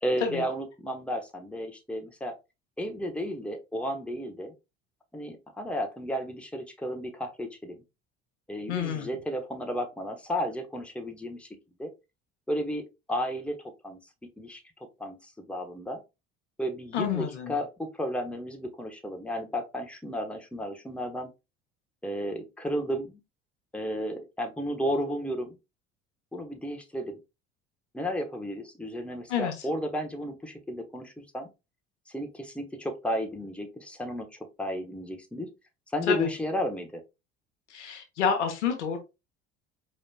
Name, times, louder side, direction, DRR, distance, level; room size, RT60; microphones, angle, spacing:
voice 1, 0.0-2.3 2.8-4.5 5.1-7.8 8.5-11.5 11.8-11.9 12.5-13.6 13.8-14.0 14.4-14.6 15.0-16.0 16.6-21.3 22.0-23.2 23.7-25.6 26.3-27.2 27.9-31.5 32.1-34.3 34.6-35.5 35.9-37.0, equal, 5° left, 1.1 m, -33 dB
voice 2, 8.7-9.1 16.9-17.5 29.3-29.5 36.1-36.3 37.7-39.0, left 7 dB, 85° left, 1.0 m, -28 dB
4.8 x 3.1 x 2.2 m
hypercardioid pair, 65°, 34 cm